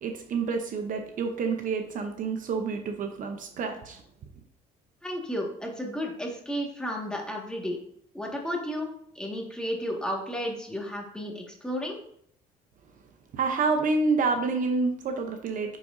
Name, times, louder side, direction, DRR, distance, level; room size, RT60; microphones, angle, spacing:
voice 1, 0.0-4.0 13.3-15.8, right 4 dB, 50° right, 0.8 m, -28 dB
voice 2, 5.0-7.8 8.1-8.9 9.1-12.0, equal, 5° left, 1.7 m, -33 dB
8.9 x 4.9 x 2.6 m
cardioid pair, 110°, 17 cm